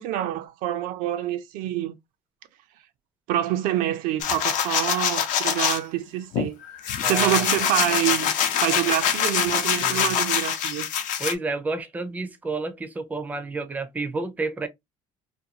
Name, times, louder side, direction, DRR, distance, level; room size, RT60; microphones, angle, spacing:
voice 1, 0.0-1.9 3.3-6.6 7.0-8.3 8.6-10.9, right 13 dB, 75° right, 0.5 m, -26 dB
sound 1, 4.2-5.8 6.3-11.3, left 8 dB, 65° left, 0.6 m, -24 dB
voice 2, 7.0-7.5 9.8-10.1 11.2-14.7, right 3 dB, 10° right, 0.4 m, -30 dB
2.5 x 2.3 x 2.7 m
cardioid pair, 120°, 14 cm